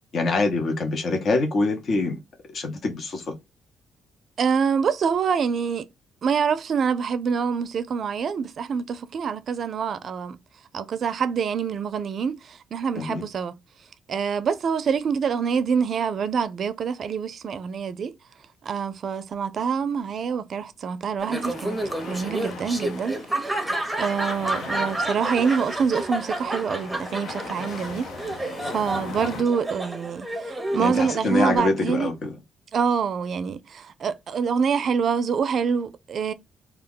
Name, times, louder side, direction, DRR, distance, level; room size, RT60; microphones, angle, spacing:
voice 1, 0.1-2.2 2.5-3.3 12.9-13.2 30.8-32.4, left 3 dB, 55° left, 0.9 m, -25 dB
voice 2, 4.4-5.9 6.2-10.4 10.7-13.5 14.1-18.1 18.6-23.2 24.0-32.1 32.7-36.3, right 6 dB, 55° right, 0.4 m, -26 dB
Laughter, 21.2-31.6, right 1 dB, 5° right, 0.7 m, -30 dB
sound 1, 21.3-29.4, left 5 dB, 85° left, 0.5 m, -40 dB
2.3 x 2.1 x 3.6 m
cardioid pair, 90°, 0 cm